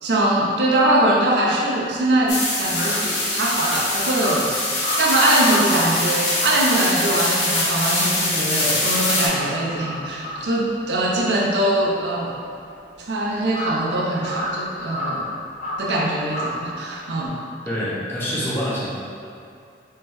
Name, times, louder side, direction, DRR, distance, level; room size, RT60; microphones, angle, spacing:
voice 1, 0.0-4.5 5.0-12.4 13.0-15.3 15.8-17.4, right 1 dB, 70° right, -3 dB, 0.6 m, -22 dB
Crow, 1.8-8.3 8.6-17.3, equal, 45° left, 0.5 m, -32 dB
sound 1, 2.3-9.3, left 2 dB, 85° left, 1.1 m, -23 dB
voice 2, 17.6-18.9, equal, 15° left, -9 dB, 0.9 m, -26 dB
3.4 x 3.2 x 3.1 m, 2.5 s
head